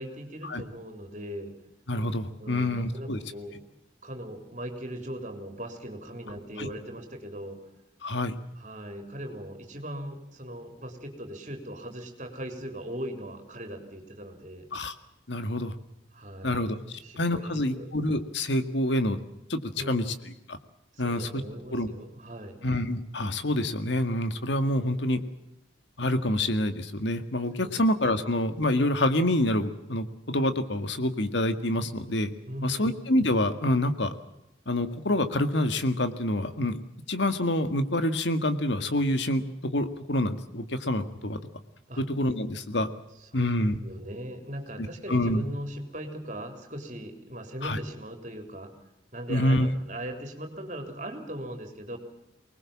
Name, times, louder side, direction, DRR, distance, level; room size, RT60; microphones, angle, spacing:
voice 1, 0.0-1.5 2.4-3.6 4.0-7.6 8.6-14.7 16.1-17.9 19.8-20.1 20.9-22.6 27.6-27.7 32.5-33.0 41.9-42.0 43.2-43.5 43.8-48.7 49.1-52.0, equal, 40° right, 5 dB, 3.8 m, -39 dB
voice 2, 1.9-3.2 6.6-6.7 8.0-8.4 14.7-15.0 15.3-15.7 16.4-19.2 19.5-19.6 19.9-20.6 21.0-21.4 21.7-21.9 22.6-25.2 26.0-32.3 32.6-34.1 34.7-36.8 37.1-41.4 42.0-42.9 43.3-43.8 44.8-45.5 47.6-47.8 49.3-49.7, left 1 dB, 75° left, 9 dB, 1.9 m, -27 dB
24.5 x 20.0 x 7.4 m, 0.85 s
head